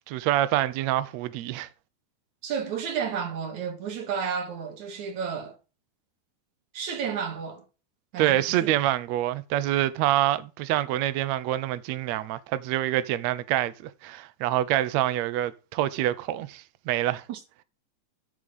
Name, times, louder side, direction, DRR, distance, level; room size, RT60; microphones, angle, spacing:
voice 1, 0.1-1.7 8.2-17.2, right 13 dB, 90° right, 1.5 m, -26 dB
voice 2, 2.4-5.6 6.7-7.6 8.1-8.7 17.3-17.4, right 7 dB, 55° right, 3.3 m, -32 dB
13.0 x 5.0 x 5.4 m
omnidirectional pair, 4.2 m